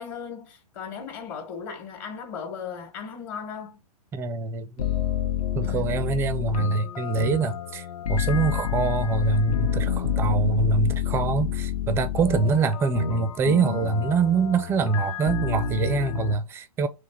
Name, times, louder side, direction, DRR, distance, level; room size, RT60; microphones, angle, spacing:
voice 1, 0.0-3.8 5.6-6.1, left 6 dB, 35° left, 1.2 m, -37 dB
voice 2, 4.1-4.9 5.5-16.9, right 4 dB, 10° right, 0.4 m, -24 dB
sound 1, 4.8-16.3, left 9 dB, 65° left, 0.8 m, -28 dB
3.4 x 3.3 x 4.2 m
figure-of-eight pair, 115°, 20 cm